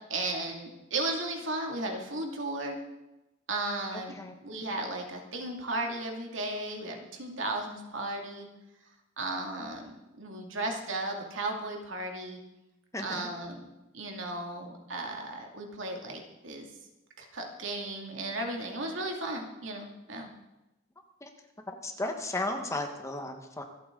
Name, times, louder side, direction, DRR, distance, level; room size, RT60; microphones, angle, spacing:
voice 1, 0.1-2.8 3.5-4.1 4.4-8.5 9.2-12.4 13.0-13.7 13.9-16.7 17.2-20.3, right 2 dB, 70° right, 2 dB, 2.4 m, -35 dB
voice 2, 3.9-4.3 12.9-13.3 21.2-21.3 21.8-23.6, left 2 dB, 15° left, 4 dB, 1.3 m, -34 dB
25.5 x 8.8 x 3.8 m, 0.99 s
head